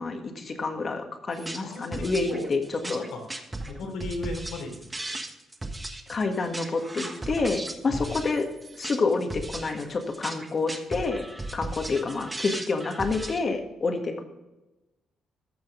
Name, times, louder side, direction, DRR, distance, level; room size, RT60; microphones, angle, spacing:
voice 1, 0.0-2.6 2.9-3.0 3.8-3.9 6.1-8.5 8.7-11.2 11.5-14.2, left 3 dB, 40° left, 5 dB, 1.6 m, -28 dB
sound 1, 1.3-13.4, right 2 dB, 15° right, 1.3 m, -37 dB
voice 2, 1.6-2.4 2.8-3.2 3.6-5.2 7.8-8.1, left 2 dB, 85° left, 1 dB, 3.4 m, -37 dB
14.5 x 6.2 x 3.7 m, 1.0 s
cardioid pair, 90°, 0 cm